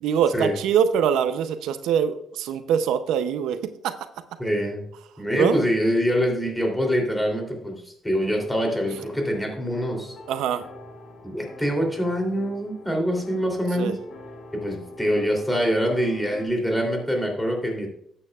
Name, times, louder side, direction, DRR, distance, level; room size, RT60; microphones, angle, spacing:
voice 1, 0.0-3.6 3.8-3.9 5.3-5.6 10.3-10.6 13.8-13.9, right 8 dB, 90° right, 10 dB, 0.6 m, -23 dB
voice 2, 4.4-4.8 5.2-10.1 11.2-14.0 14.5-17.9, equal, 5° left, 1 dB, 3.0 m, -25 dB
sound 1, 8.2-16.5, left 2 dB, 60° left, 2.4 m, -45 dB
13.0 x 8.8 x 2.4 m, 0.72 s
cardioid pair, 90°, 0 cm